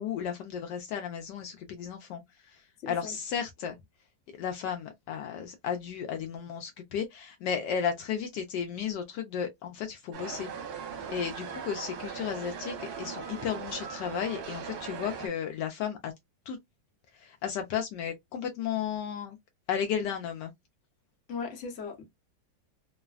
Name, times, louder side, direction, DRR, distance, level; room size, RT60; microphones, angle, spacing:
voice 1, 0.0-2.2 2.5-2.6 2.9-3.8 4.4-10.5 11.1-16.1 16.5-16.6 17.2-19.4 19.7-20.5, left 8 dB, 75° left, 1.1 m, -34 dB
voice 2, 2.8-3.2 21.3-22.0, left 5 dB, 50° left, 1.0 m, -38 dB
sound 1, 10.1-15.3, right 6 dB, 60° right, 1.3 m, -39 dB
3.1 x 2.1 x 2.3 m
omnidirectional pair, 2.0 m